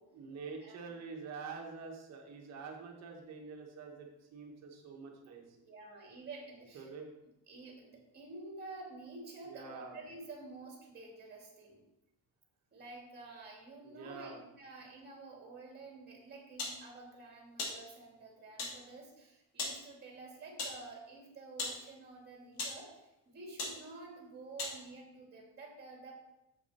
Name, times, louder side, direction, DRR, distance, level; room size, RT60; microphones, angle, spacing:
voice 1, 0.1-5.4 6.7-7.1 9.4-10.0 13.8-14.4, right 5 dB, 45° right, 1 dB, 1.9 m, -46 dB
voice 2, 5.6-6.9 7.5-11.8 12.7-26.1, right 3 dB, 25° right, -1 dB, 2.8 m, -50 dB
sound 1, 16.6-16.8 17.6-17.8 18.6-18.8 19.6-19.8 20.6-20.8 21.6-21.8 22.5-22.8 23.6-23.8 24.6-24.8, left 3 dB, 80° left, 2.9 m, -38 dB
8.4 x 7.6 x 4.4 m, 0.90 s
cardioid pair, 170°, 36 cm